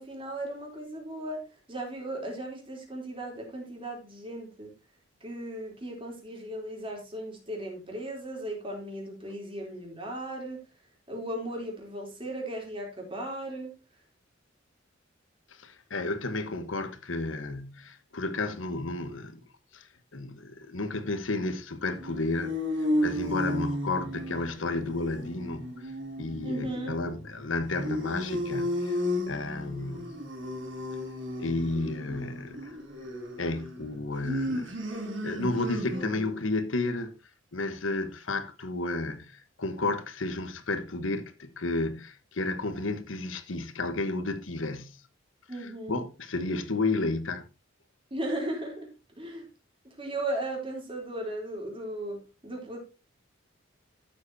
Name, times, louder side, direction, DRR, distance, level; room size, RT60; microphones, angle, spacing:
voice 1, 0.0-4.8 5.2-10.6 11.1-13.7 26.4-27.1 35.9-36.0 45.5-46.0 48.1-48.9 49.2-49.5 49.8-52.8, right 1 dB, 25° right, 3.5 m, -36 dB
voice 2, 15.6-19.4 19.7-22.6 23.0-25.9 26.2-30.2 31.4-32.8 33.4-34.7 35.2-37.1 37.5-45.0 45.9-47.5, left 2 dB, 80° left, 1.2 m, -32 dB
sound 1, 21.9-36.4, left 1 dB, 65° right, 2.6 m, -34 dB
13.0 x 7.7 x 2.8 m
head